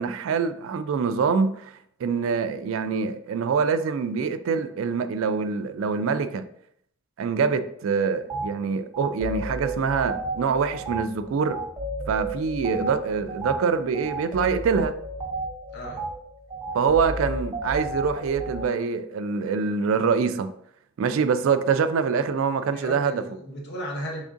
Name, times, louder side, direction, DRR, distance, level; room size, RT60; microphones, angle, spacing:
voice 1, 0.0-6.4 7.2-11.6 12.1-14.9 16.7-20.5 21.0-23.2, right 5 dB, 75° right, 10 dB, 0.3 m, -25 dB
sound 1, 8.3-8.5 8.9-18.7, right 2 dB, 20° right, 0.6 m, -32 dB
voice 2, 15.7-16.0 22.6-24.2, equal, 55° left, 0 dB, 0.9 m, -35 dB
3.7 x 3.4 x 2.5 m, 0.68 s
head